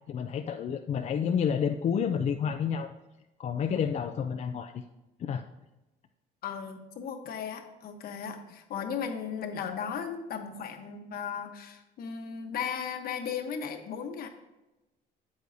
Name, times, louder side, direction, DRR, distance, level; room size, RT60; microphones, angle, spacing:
voice 1, 0.1-2.9 3.4-4.8 5.2-5.4, left 7 dB, 40° left, 6 dB, 0.4 m, -29 dB
voice 2, 6.4-14.3, left 7 dB, 65° left, 6 dB, 1.1 m, -36 dB
8.2 x 8.1 x 2.7 m, 1.0 s
cardioid pair, 110°, 17 cm